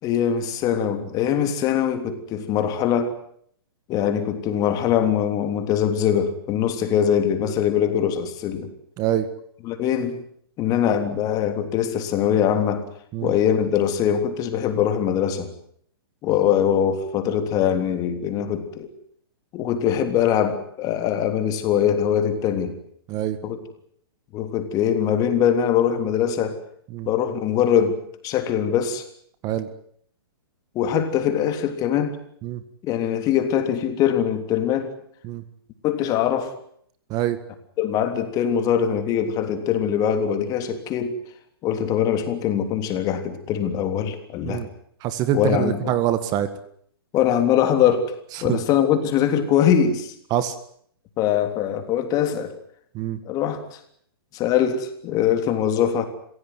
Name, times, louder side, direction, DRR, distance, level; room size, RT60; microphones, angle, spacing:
voice 1, 0.0-3.1 3.9-8.7 9.6-10.2 10.6-12.9 13.2-15.5 16.2-18.9 19.5-22.8 23.4-23.6 24.3-26.6 27.0-29.0 30.7-32.2 32.8-34.9 35.8-36.5 37.8-41.2 41.6-44.6 45.3-45.8 47.1-48.1 48.4-50.1 51.2-52.5 53.2-53.8 54.3-56.1, left 9 dB, 30° left, 7 dB, 3.4 m, -22 dB
voice 2, 9.0-9.3 13.1-13.3 23.1-23.4 26.9-27.1 29.4-29.7 32.4-32.6 35.2-35.4 37.1-37.4 44.4-44.7 45.0-46.5 48.3-48.6 50.3-50.5 52.9-53.2, right 12 dB, 30° right, 12 dB, 1.8 m, -24 dB
25.5 x 16.5 x 9.5 m, 0.65 s
hypercardioid pair, 130°, 13 cm